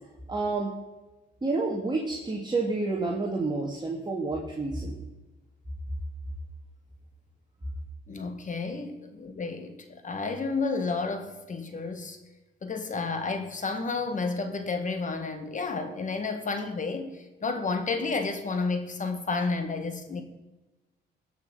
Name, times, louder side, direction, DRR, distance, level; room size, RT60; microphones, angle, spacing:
voice 1, 0.3-0.7 1.4-5.0, right 3 dB, 20° right, -1 dB, 2.1 m, -29 dB
voice 2, 8.1-12.2 12.6-20.2, left 4 dB, 40° left, 7 dB, 1.8 m, -31 dB
17.0 x 6.2 x 5.5 m, 1.1 s
cardioid pair, 90°, 20 cm